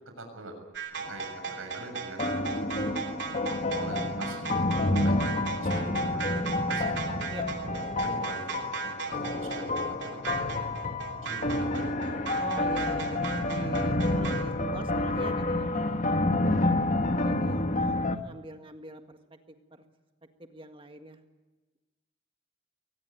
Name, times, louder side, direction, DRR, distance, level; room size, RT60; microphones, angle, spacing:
voice 1, 0.2-0.5 1.1-2.9 3.7-4.5 5.0-7.1 7.7-10.6 11.2-12.3, right 2 dB, 80° right, 4 dB, 7.1 m, -44 dB
sound 1, 0.7-14.4, right 5 dB, 55° right, 3.3 m, -37 dB
sound 2, 1.1-1.5 2.2-18.2, left 2 dB, 35° left, 1.3 m, -29 dB
voice 2, 4.7-5.1 7.3-7.4 12.3-16.0 17.2-19.8 20.4-21.2, right 1 dB, 25° right, 6 dB, 1.8 m, -43 dB
23.0 x 19.5 x 9.2 m, 1.2 s
head